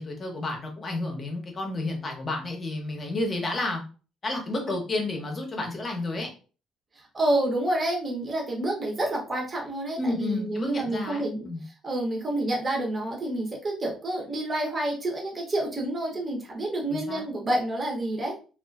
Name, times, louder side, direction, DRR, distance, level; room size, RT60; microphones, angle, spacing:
voice 1, 0.0-3.8 4.2-6.3 10.0-11.6 16.9-17.2, left 2 dB, 30° left, 3 dB, 0.7 m, -31 dB
voice 2, 6.9-18.3, right 1 dB, 25° right, -1 dB, 0.7 m, -29 dB
2.4 x 2.4 x 2.3 m, 0.36 s
cardioid pair, 130°, 0 cm